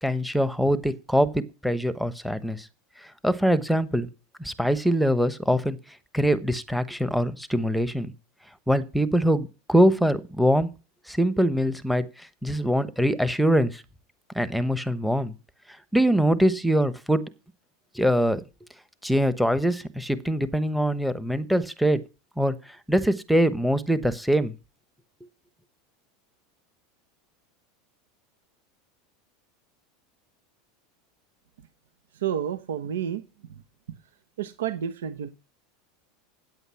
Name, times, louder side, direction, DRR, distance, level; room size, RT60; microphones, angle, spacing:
voice 1, 0.0-2.7 3.0-4.1 4.4-5.8 6.1-8.1 8.7-10.7 11.1-13.8 14.3-15.3 15.9-17.2 17.9-18.4 19.0-22.0 22.4-24.5, equal, ahead, 14 dB, 1.0 m, -23 dB
voice 2, 32.2-33.2 34.4-35.3, right 9 dB, 90° right, 11 dB, 1.0 m, -29 dB
9.2 x 8.0 x 5.7 m, 0.31 s
supercardioid pair, 115°, 0 cm